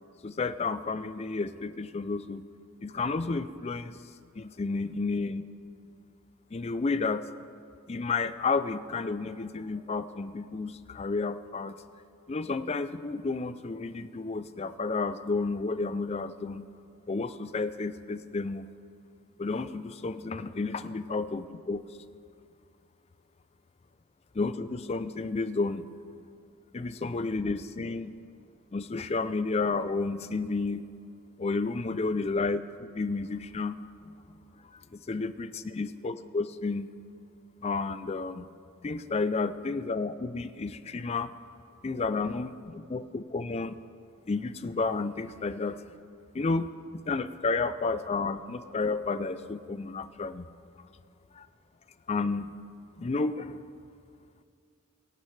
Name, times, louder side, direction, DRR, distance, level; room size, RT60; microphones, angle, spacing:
voice 1, 0.2-2.5 2.8-4.0 4.4-5.5 6.5-7.2 7.9-11.8 12.3-16.7 17.1-18.7 19.4-21.8 24.3-25.9 26.7-28.1 28.7-30.9 31.4-32.6 32.9-33.8 34.7-36.9 37.6-38.5 38.8-41.3 41.8-43.8 44.3-45.8 46.3-50.5 51.3-51.5 52.1-52.5 53.0-53.6, left 3 dB, 30° left, 12 dB, 0.4 m, -31 dB
23.0 x 10.5 x 3.3 m, 2.3 s
head